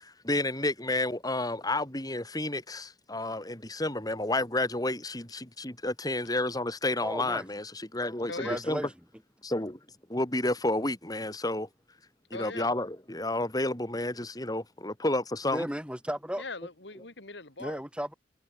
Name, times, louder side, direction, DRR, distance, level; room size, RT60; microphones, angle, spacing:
voice 1, 0.0-8.8 9.4-9.8 10.1-11.7 12.3-15.7, left 2 dB, 20° left, 3.7 m, -31 dB
voice 2, 7.0-7.4 8.4-8.9 15.5-16.4 17.6-18.1, equal, 5° right, 5.0 m, -34 dB
voice 3, 8.3-8.6 12.3-12.7 16.4-17.8, left 3 dB, 60° left, 3.0 m, -40 dB
head